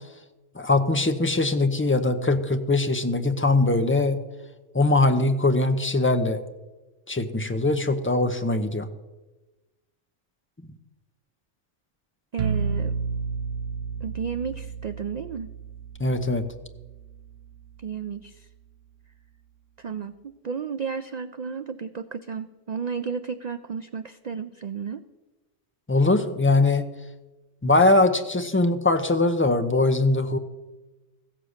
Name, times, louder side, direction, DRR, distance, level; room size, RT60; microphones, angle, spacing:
voice 1, 0.5-4.2 4.7-6.4 7.1-8.9 16.0-16.4 25.9-26.8 27.6-30.4, left 2 dB, 15° left, 8 dB, 0.5 m, -21 dB
voice 2, 12.3-12.9 14.0-15.5 17.8-18.5 19.8-20.1 20.4-25.0, right 6 dB, 65° right, 11 dB, 0.4 m, -32 dB
sound 1, 12.4-18.2, right 5 dB, 85° right, 0.9 m, -32 dB
15.5 x 7.5 x 6.5 m, 1.1 s
omnidirectional pair, 1.3 m